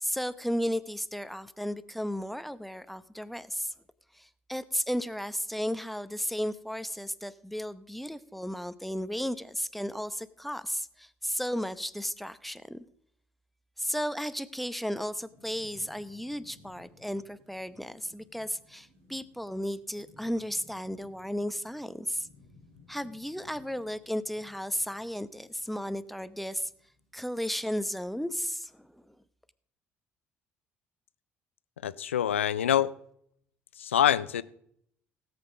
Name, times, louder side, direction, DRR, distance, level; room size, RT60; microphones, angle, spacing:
voice 1, 0.0-3.7 4.1-12.8 13.8-22.3 22.9-26.7 27.1-28.9, equal, ahead, 0.8 m, -34 dB
Thunderstorm / Rain, 14.9-27.1, left 2 dB, 80° right, 5.0 m, -60 dB
voice 2, 31.8-32.9 33.8-34.4, left 10 dB, 90° left, 0.4 m, -25 dB
17.0 x 7.9 x 5.2 m
hypercardioid pair, 55°, 7 cm